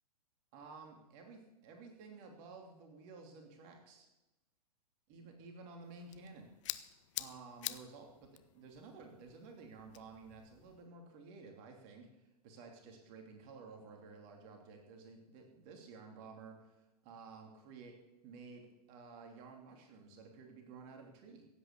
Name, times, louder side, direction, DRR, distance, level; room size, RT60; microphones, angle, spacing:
voice 1, 0.5-4.1 5.1-6.5 6.8-17.9 18.2-18.6 18.9-21.5, right 4 dB, 40° right, 3 dB, 2.9 m, -53 dB
sound 1, 5.8-10.9, left 13 dB, 50° left, 0.8 m, -47 dB
16.0 x 8.6 x 8.2 m, 1.0 s
figure-of-eight pair, 115°, 20 cm